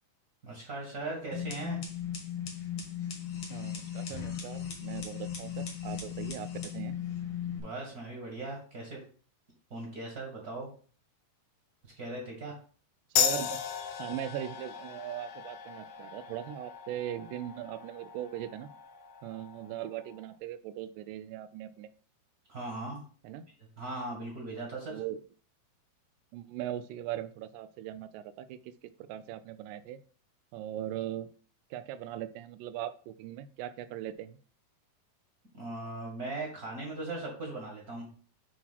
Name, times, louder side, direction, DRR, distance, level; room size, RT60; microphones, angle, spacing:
voice 1, 0.4-1.8 7.6-9.0 9.7-10.7 12.0-12.5 22.5-23.0 23.8-25.0 35.5-38.1, right 2 dB, 40° right, -1 dB, 1.4 m, -39 dB
sound 1, 1.3-7.6, left 9 dB, 50° left, 1.8 m, -37 dB
voice 2, 3.5-7.0 13.1-13.6 14.0-18.7 19.2-21.9 23.2-23.5 24.9-25.2 26.3-28.7 29.1-30.0 30.5-31.3 31.7-34.4, right 12 dB, 90° right, 11 dB, 1.9 m, -39 dB
sound 2, 13.2-20.2, left 8 dB, 70° left, 2.3 m, -36 dB
8.1 x 3.0 x 5.7 m, 0.42 s
omnidirectional pair, 4.5 m